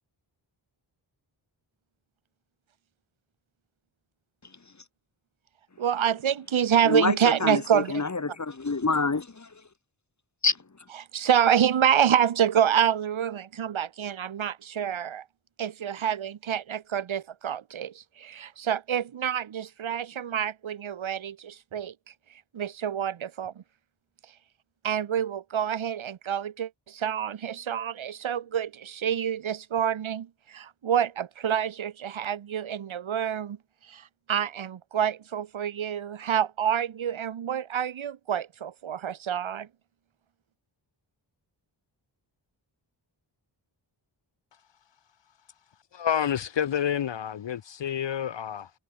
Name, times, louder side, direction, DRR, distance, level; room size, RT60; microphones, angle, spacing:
voice 1, 5.8-8.0 11.1-15.2 15.6-21.9 22.5-23.6 24.8-33.6 33.9-39.7, right 9 dB, 90° right, 1.7 m, -27 dB
voice 2, 6.8-9.5 10.4-10.6, left 4 dB, 35° left, 4.9 m, -27 dB
voice 3, 45.9-48.7, left 9 dB, 65° left, 1.0 m, -29 dB
wide cardioid pair, 90°, 47 cm